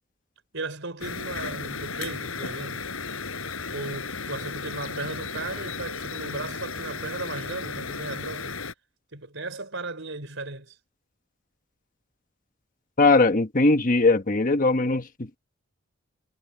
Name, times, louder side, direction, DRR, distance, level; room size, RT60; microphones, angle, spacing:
voice 1, 0.5-2.9 3.7-8.5 9.1-10.8, right 3 dB, 65° right, 5.4 m, -36 dB
sound 1, 1.0-8.7, left 4 dB, 85° left, 5.1 m, -34 dB
voice 2, 13.0-15.4, left 3 dB, 40° left, 1.3 m, -20 dB
head